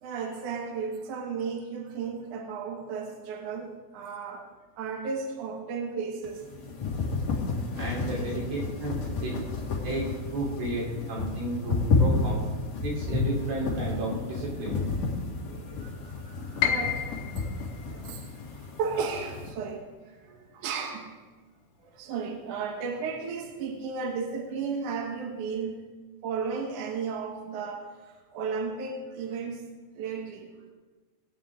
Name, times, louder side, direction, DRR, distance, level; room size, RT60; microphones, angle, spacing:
voice 1, 0.0-4.5 4.8-6.4 8.1-8.3 15.5-17.5 17.9-18.3 18.6-19.9 20.2-21.1 21.9-25.8 26.2-29.6 30.0-30.5, right 5 dB, 65° right, 2 dB, 2.4 m, -34 dB
sound 1, 6.2-19.5, left 3 dB, 50° left, 2.9 m, -31 dB
voice 2, 7.7-9.3 9.8-10.1 10.3-12.5 12.8-14.8, right 2 dB, 80° right, -5 dB, 5.5 m, -32 dB
Piano, 16.6-22.5 22.9-24.0 24.4-24.5 25.2-25.6, left 9 dB, 70° left, 2.0 m, -35 dB
19.5 x 9.1 x 3.7 m, 1.3 s
omnidirectional pair, 4.3 m